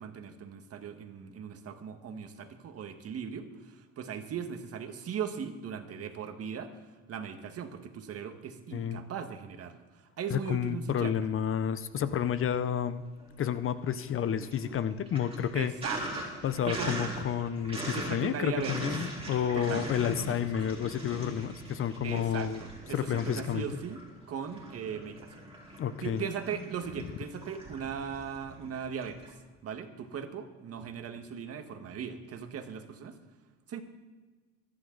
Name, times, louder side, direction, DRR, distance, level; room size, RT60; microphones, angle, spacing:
voice 1, 0.0-11.1 15.5-16.3 16.7-17.0 17.9-18.9 19.5-19.8 20.1-20.8 22.0-24.0 24.3-33.2 33.7-33.8, right 7 dB, 45° right, 7 dB, 1.7 m, -39 dB
voice 2, 10.3-13.0 13.4-15.7 16.4-22.6 22.9-23.7 25.8-26.2, left 9 dB, 40° left, 13 dB, 0.7 m, -30 dB
Sink (filling or washing), 12.0-12.9 13.2-29.3, right 1 dB, 15° right, 4.1 m, -41 dB
23.5 x 11.5 x 4.0 m, 1.3 s
cardioid pair, 120°, 35 cm